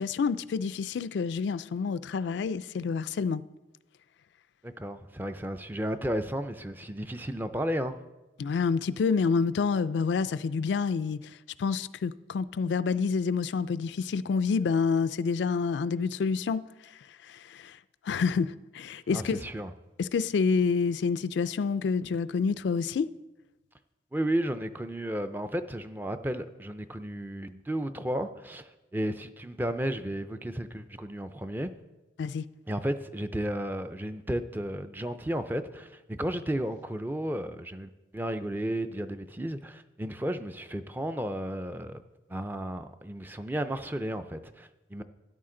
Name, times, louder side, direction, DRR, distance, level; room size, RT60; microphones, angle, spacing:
voice 1, 0.0-3.4 8.4-17.8 18.0-19.4 20.0-23.1 32.2-32.5, left 5 dB, 75° left, 0.3 m, -28 dB
voice 2, 4.6-8.0 19.1-19.7 24.1-31.7 32.7-42.0 42.3-45.0, right 1 dB, 10° right, 0.4 m, -33 dB
12.5 x 10.0 x 3.8 m
head